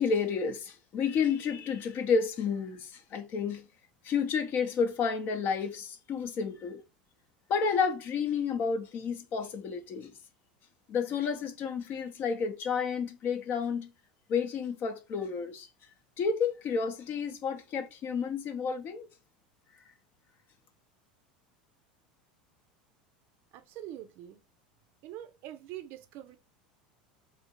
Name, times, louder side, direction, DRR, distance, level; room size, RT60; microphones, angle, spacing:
voice 1, 0.0-3.7 4.0-6.8 7.5-10.1 10.9-13.9 14.3-15.7 16.2-19.1, left 6 dB, 45° left, 0.6 m, -31 dB
voice 2, 23.5-24.4 25.0-26.4, right 12 dB, 55° right, 0.5 m, -44 dB
2.6 x 2.5 x 2.9 m
hypercardioid pair, 90°, 4 cm